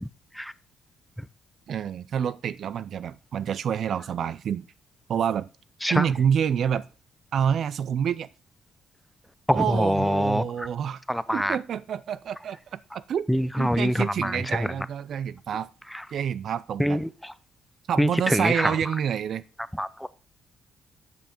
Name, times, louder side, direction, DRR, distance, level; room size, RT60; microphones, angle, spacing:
voice 1, 1.7-4.7 5.1-5.5 5.9-6.8 7.3-8.3 9.5-11.0 11.3-13.3 13.6-15.7 16.1-17.0 17.9-19.4, right 8 dB, 65° right, 0.4 m, -27 dB
voice 2, 9.5-10.7 11.1-11.6 13.3-14.7 15.9-16.0 16.8-17.3 18.0-18.8 19.7-20.1, equal, ahead, 0.5 m, -25 dB
9.0 x 5.6 x 4.4 m
cardioid pair, 90°, 0 cm